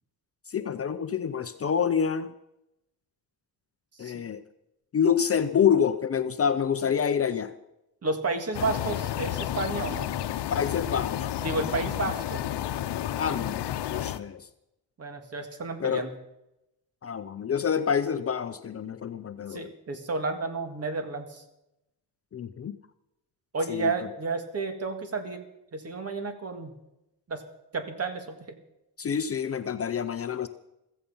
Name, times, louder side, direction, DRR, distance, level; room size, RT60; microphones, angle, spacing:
voice 1, 0.5-2.3 4.0-4.4 4.9-7.5 10.5-11.3 13.2-13.6 13.9-14.5 15.8-16.1 17.0-19.7 22.3-22.8 23.7-24.1 29.0-30.5, left 7 dB, 35° left, 10 dB, 0.6 m, -27 dB
voice 2, 8.0-10.1 11.4-12.4 15.0-16.1 19.5-21.4 23.5-25.4 25.7-26.7 27.3-27.4 27.7-28.6, right 3 dB, 40° right, 7 dB, 1.9 m, -31 dB
sound 1, 8.5-14.2, left 12 dB, 85° left, 0.8 m, -31 dB
16.0 x 14.5 x 5.5 m, 0.89 s
wide cardioid pair, 160°, 40 cm